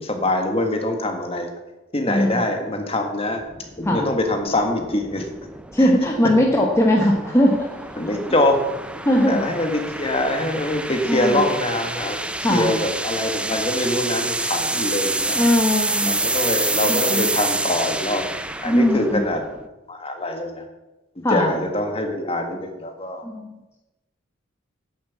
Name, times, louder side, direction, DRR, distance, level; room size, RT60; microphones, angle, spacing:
voice 1, 0.0-1.5 1.9-3.4 3.8-5.3 5.8-5.9 8.0-8.6 9.2-15.4 16.0-19.4 19.9-20.6 21.3-23.2, left 1 dB, 30° left, 5 dB, 1.7 m, -24 dB
voice 2, 2.1-2.4 3.8-4.1 5.7-7.7 9.0-9.4 11.1-11.4 12.4-12.7 15.2-16.2 16.9-17.3 18.6-19.2 21.2-21.5 23.2-23.8, left 1 dB, 15° left, 0 dB, 1.1 m, -20 dB
sound 1, 3.4-19.7, right 2 dB, 5° right, 0.5 m, -28 dB
9.6 x 7.2 x 8.4 m, 1.0 s
head